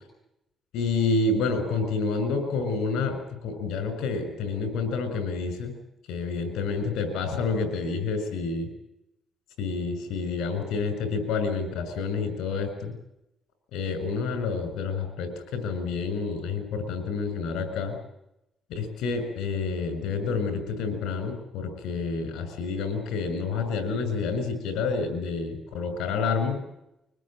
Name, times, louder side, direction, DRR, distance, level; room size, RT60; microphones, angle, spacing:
voice 1, 0.7-5.7 6.1-8.7 9.6-12.9 13.7-17.9 18.7-26.6, left 4 dB, 90° left, 8 dB, 6.6 m, -29 dB
24.0 x 20.0 x 9.0 m, 0.85 s
cardioid pair, 90°, 0 cm